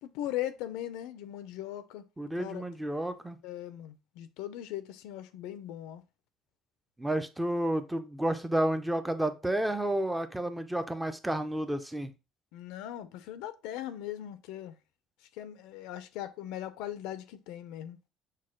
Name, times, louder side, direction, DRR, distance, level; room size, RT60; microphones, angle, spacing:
voice 1, 0.0-2.1 2.4-2.6 3.4-6.0 12.5-14.8 15.3-18.0, left 12 dB, 90° left, 0.5 m, -39 dB
voice 2, 2.2-3.4 7.0-12.1, right 1 dB, 5° right, 0.4 m, -31 dB
6.4 x 2.2 x 3.7 m
cardioid pair, 170°, 0 cm